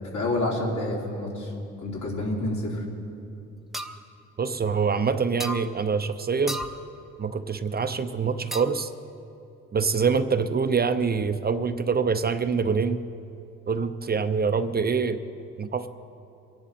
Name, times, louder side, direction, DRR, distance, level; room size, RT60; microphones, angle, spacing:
voice 1, 0.1-1.5 1.8-2.8, left 1 dB, 65° left, -4 dB, 4.0 m, -28 dB
sound 1, 3.7-4.0 5.4-5.7 6.5-6.8 8.5-8.9, equal, ahead, 0.8 m, -33 dB
voice 2, 4.4-6.6 7.2-8.9 9.7-13.0 13.7-15.2 15.6-15.9, right 5 dB, 30° right, 9 dB, 0.6 m, -25 dB
23.5 x 10.5 x 4.3 m, 2.7 s
cardioid pair, 90°, 30 cm